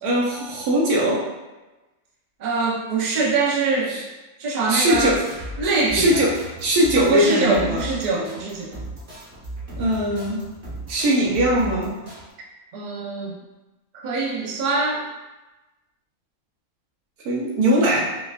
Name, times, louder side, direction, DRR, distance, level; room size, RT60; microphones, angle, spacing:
voice 1, 0.0-1.3 3.9-4.0 4.7-5.3 5.9-7.9 9.8-10.4 10.9-12.0 17.2-18.0, equal, 85° right, -3 dB, 1.3 m, -20 dB
voice 2, 2.4-4.0 4.4-5.2 5.6-6.3 6.9-8.7 12.7-13.3 14.0-15.1, right 3 dB, 55° right, -2 dB, 0.4 m, -23 dB
sound 1, 4.8-12.2, right 1 dB, 35° right, 1.1 m, -36 dB
4.5 x 2.3 x 2.4 m, 1.1 s
omnidirectional pair, 1.6 m